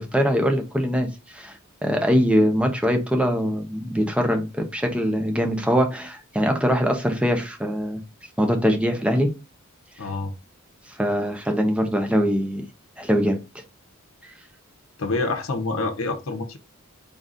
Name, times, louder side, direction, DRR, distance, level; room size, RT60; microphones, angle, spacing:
voice 1, 0.0-8.0 8.4-9.3 11.0-12.6 13.0-13.4 14.2-14.3, equal, 5° right, 0.7 m, -22 dB
voice 2, 10.0-10.3 15.0-16.6, left 3 dB, 70° left, 0.8 m, -27 dB
3.9 x 3.8 x 2.5 m
head